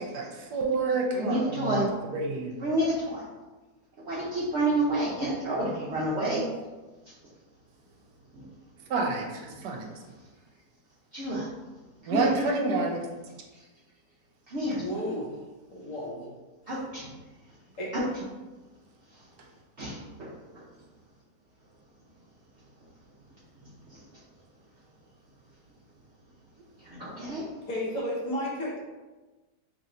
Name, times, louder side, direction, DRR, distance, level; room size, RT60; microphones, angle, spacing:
voice 1, 0.0-2.5 8.9-9.9 12.1-13.1 19.8-19.9, right 3 dB, 75° right, 1 dB, 1.2 m, -29 dB
voice 2, 1.1-1.9 2.6-3.2 4.1-6.4 11.1-11.5 12.1-12.3 14.5-14.8 16.7-17.1 17.9-18.1 19.8-20.3 26.9-27.4, right 1 dB, 60° right, -7 dB, 0.7 m, -28 dB
voice 3, 14.7-15.3 15.7-16.3 17.8-17.9 27.7-28.8, equal, 55° left, -4 dB, 1.1 m, -32 dB
2.9 x 2.5 x 4.1 m, 1.2 s
omnidirectional pair, 1.8 m